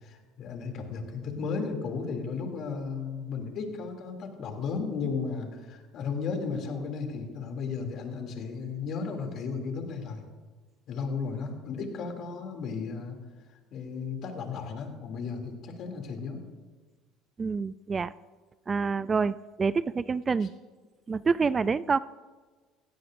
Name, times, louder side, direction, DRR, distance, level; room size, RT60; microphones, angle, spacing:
voice 1, 0.0-10.2 10.9-13.2 13.7-16.4, left 5 dB, 55° left, 3 dB, 2.8 m, -34 dB
voice 2, 17.4-18.1 18.7-20.5 21.1-22.0, right 5 dB, 30° right, 17 dB, 0.4 m, -27 dB
17.5 x 16.0 x 2.6 m, 1.4 s
supercardioid pair, 85°, 0 cm